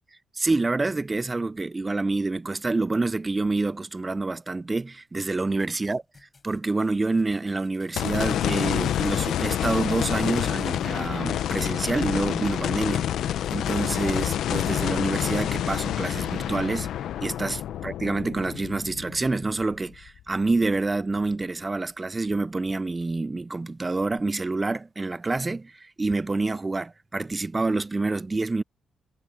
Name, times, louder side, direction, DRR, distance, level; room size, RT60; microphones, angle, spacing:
voice 1, 0.3-6.0 6.4-16.9 17.2-28.6, right 3 dB, 20° right, 0.4 m, -27 dB
sound 1, 5.6-11.3 11.6-11.7 12.1-12.2 12.6-12.7 13.2-14.0 14.6-14.7, left 3 dB, 25° left, 5.3 m, -56 dB
sound 2, 8.0-20.3 20.7-20.8 24.2-24.3, left 11 dB, 75° left, 0.7 m, -28 dB
cardioid pair, 90°, 0 cm